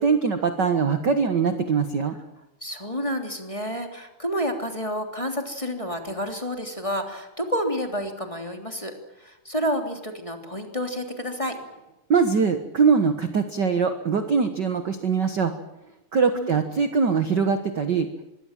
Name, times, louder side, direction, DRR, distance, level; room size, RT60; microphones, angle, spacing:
voice 1, 0.0-2.1 12.1-15.5 16.1-18.1, right 5 dB, 45° right, 8 dB, 1.7 m, -22 dB
voice 2, 2.6-11.5 16.3-16.6, equal, 10° left, 4 dB, 3.0 m, -30 dB
25.0 x 22.5 x 7.5 m, 0.93 s
omnidirectional pair, 3.4 m